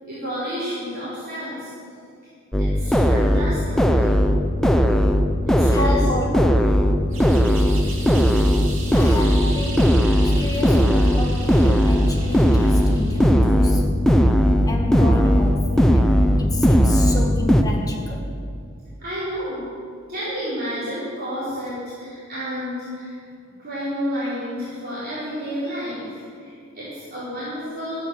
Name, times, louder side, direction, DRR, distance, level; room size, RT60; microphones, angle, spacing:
voice 1, 0.0-1.7 2.6-4.1 5.5-6.3 19.0-19.6 20.1-23.2 23.6-28.1, equal, 50° right, -12 dB, 4.5 m, -31 dB
sound 1, 2.5-17.6, equal, 5° left, 0.6 m, -18 dB
voice 2, 5.6-6.6 8.9-13.9 14.7-16.1 16.4-18.3, left 2 dB, 20° left, -2 dB, 1.9 m, -30 dB
sound 2, 7.1-13.5, right 3 dB, 70° right, 2.8 m, -38 dB
13.5 x 9.8 x 7.0 m, 2.4 s
head